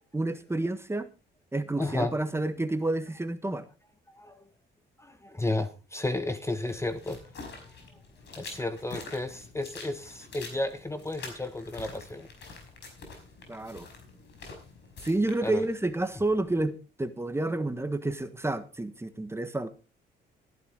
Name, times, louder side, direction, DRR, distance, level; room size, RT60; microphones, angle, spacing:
voice 1, 0.1-1.1 1.5-3.7 13.5-13.9 15.0-19.7, right 2 dB, 10° right, 10 dB, 1.4 m, -30 dB
voice 2, 1.8-2.1 4.1-4.5 5.0-8.0 8.4-12.3 15.4-15.7, left 2 dB, 15° left, 11 dB, 1.2 m, -33 dB
sound 1, 6.7-16.7, left 3 dB, 60° left, 5.1 m, -47 dB
14.0 x 12.0 x 3.8 m, 0.32 s
cardioid pair, 90°, 20 cm